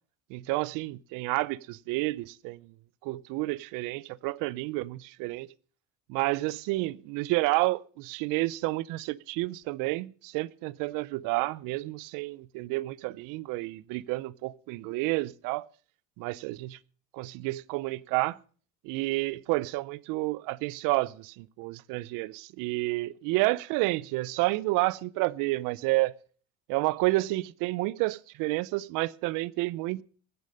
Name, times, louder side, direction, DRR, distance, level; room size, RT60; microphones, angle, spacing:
voice 1, 0.3-2.6 3.0-5.5 6.1-15.7 16.2-16.8 17.1-18.4 18.8-26.1 26.7-30.0, right 21 dB, 80° right, 0.6 m, -30 dB
15.0 x 9.9 x 5.3 m
cardioid pair, 135°, 32 cm